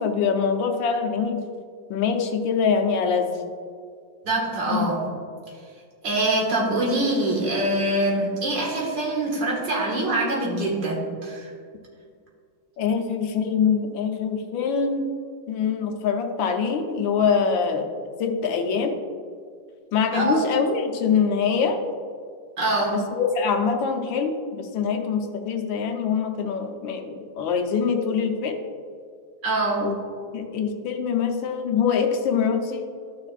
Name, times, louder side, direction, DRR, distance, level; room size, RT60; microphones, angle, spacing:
voice 1, 0.0-1.4 1.9-3.3 4.7-4.8 12.8-15.1 15.5-17.9 18.2-19.0 19.9-21.8 22.9-28.6 29.8-30.0 30.3-32.9, left 6 dB, 85° left, 5 dB, 1.5 m, -24 dB
voice 2, 4.2-5.1 6.0-11.5 20.1-20.4 22.6-23.0 29.4-29.8, right 2 dB, 70° right, -2 dB, 2.3 m, -24 dB
13.0 x 6.0 x 2.4 m, 2.1 s
omnidirectional pair, 2.0 m